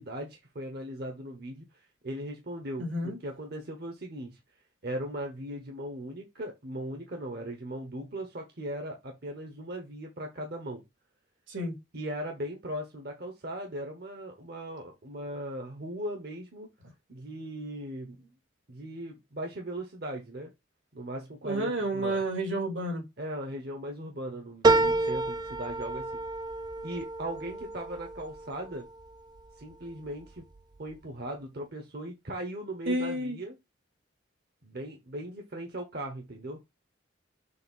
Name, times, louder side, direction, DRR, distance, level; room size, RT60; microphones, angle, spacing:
voice 1, 0.0-4.4 4.8-10.8 11.9-16.7 17.1-18.3 18.7-20.5 20.9-22.2 23.2-26.2 26.8-28.8 29.6-30.4 30.8-33.5 34.6-36.6, right 1 dB, 55° right, 1.1 m, -38 dB
voice 2, 2.8-3.2 11.5-11.7 21.4-23.0 32.9-33.4, right 1 dB, 80° right, 2.9 m, -30 dB
sound 1, 24.6-29.4 29.9-30.6 31.0-31.1, right 2 dB, 20° right, 0.4 m, -29 dB
6.8 x 2.6 x 5.4 m
head